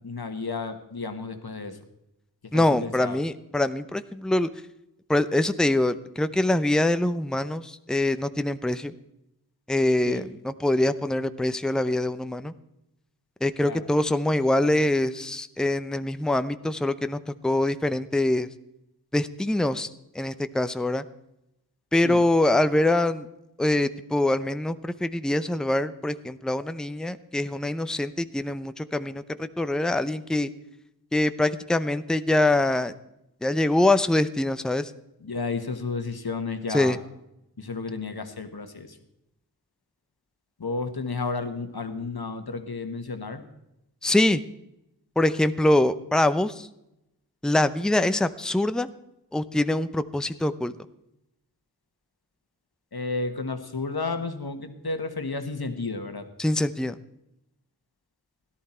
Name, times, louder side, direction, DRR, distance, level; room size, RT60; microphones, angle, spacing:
voice 1, 0.0-1.8 2.4-3.2 10.1-10.2 13.6-13.8 22.0-22.2 35.2-37.0 37.6-39.0 40.6-43.4 52.9-56.3, left 3 dB, 75° left, 7 dB, 1.4 m, -32 dB
voice 2, 2.5-4.5 5.1-8.9 9.7-12.5 13.4-18.5 19.1-19.9 20.1-21.0 21.9-23.3 23.6-30.5 31.1-32.9 33.4-34.9 36.7-37.0 44.0-44.4 45.2-46.7 47.4-48.9 49.3-50.7 56.4-57.0, left 1 dB, ahead, 12 dB, 0.6 m, -24 dB
17.0 x 11.5 x 4.4 m, 0.86 s
wide cardioid pair, 50°, 38 cm